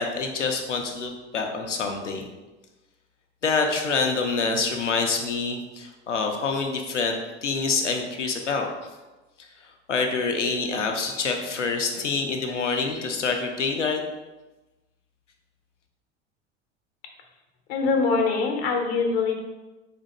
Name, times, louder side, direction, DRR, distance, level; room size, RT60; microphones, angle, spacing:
voice 1, 0.0-2.3 3.4-8.7 9.4-9.5 9.9-14.0, left 4 dB, 85° left, 3 dB, 0.7 m, -26 dB
voice 2, 17.7-19.4, left 4 dB, 55° left, 3 dB, 0.9 m, -23 dB
4.2 x 2.7 x 4.1 m, 1.1 s
figure-of-eight pair, 75°, 35 cm